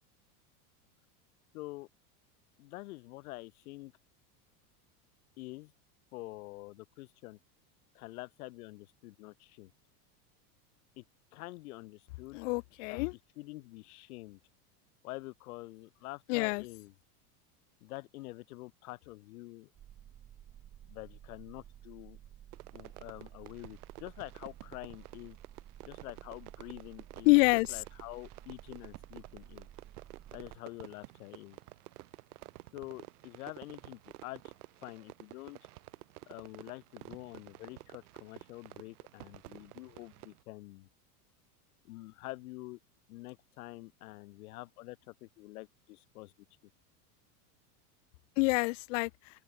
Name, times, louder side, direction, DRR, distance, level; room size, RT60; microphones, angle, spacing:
voice 1, 1.5-1.9 2.6-3.9 5.4-5.7 6.1-7.4 7.9-9.7 11.0-11.1 11.3-12.4 12.9-14.4 15.0-16.9 17.8-19.7 20.9-22.2 22.7-25.4 25.8-29.7 30.3-31.6 32.7-34.5 34.8-35.6 36.3-40.9 41.8-42.8 43.1-46.3, left 20 dB, 70° left, 1.6 m, -47 dB
voice 2, 12.3-13.1 16.3-16.6 27.3-27.8 48.4-49.1, left 26 dB, 55° left, 0.9 m, -26 dB
sound 1, 19.7-30.6, right 11 dB, 20° right, 2.0 m, -53 dB
Fireworks, 22.5-40.4, right 19 dB, 75° right, 1.6 m, -52 dB
open air
supercardioid pair, 165°, 45 cm